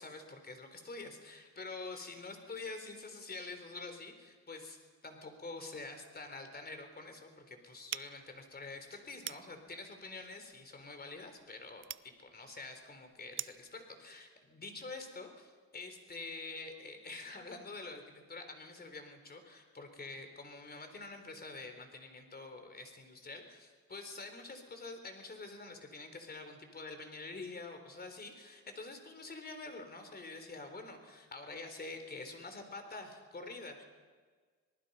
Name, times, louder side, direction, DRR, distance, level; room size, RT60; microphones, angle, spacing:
voice 1, 0.0-4.8 5.0-18.0 18.3-33.8, left 3 dB, 30° left, 6 dB, 3.8 m, -47 dB
sound 1, 7.9-13.7, right 10 dB, 40° right, 0.5 m, -47 dB
26.0 x 19.0 x 5.5 m, 1.5 s
cardioid pair, 90°, 30 cm